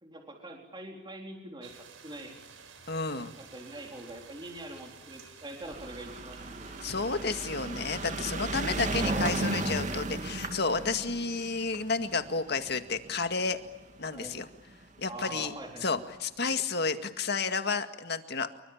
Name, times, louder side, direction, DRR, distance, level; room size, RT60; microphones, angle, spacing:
voice 1, 0.0-1.7 2.0-2.4 3.4-6.7 9.0-9.3 14.1-14.5 15.0-16.0, right 1 dB, 25° right, 1 dB, 4.1 m, -43 dB
sound 1, 1.6-8.9, right 6 dB, 85° right, 4.4 m, -52 dB
voice 2, 2.9-3.3 6.8-13.6 14.0-14.5 15.0-15.5 15.8-18.5, left 4 dB, 55° left, 8 dB, 2.1 m, -31 dB
sound 2, 5.7-14.2 15.0-15.1 15.3-15.4 15.6-15.7, right 2 dB, 40° right, 2.4 m, -35 dB
28.0 x 24.0 x 8.9 m, 1.0 s
head